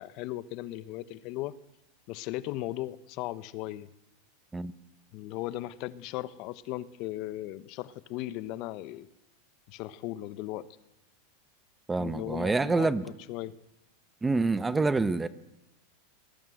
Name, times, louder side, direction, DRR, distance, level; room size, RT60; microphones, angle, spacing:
voice 1, 0.0-1.6 2.1-3.9 5.1-9.1 9.7-10.7 12.0-12.9 13.3-13.5, left 16 dB, 50° left, 16 dB, 1.2 m, -37 dB
voice 2, 11.9-13.1 14.2-15.3, right 3 dB, 10° right, 14 dB, 1.0 m, -27 dB
22.5 x 21.0 x 7.9 m, 0.88 s
supercardioid pair, 130°, 0 cm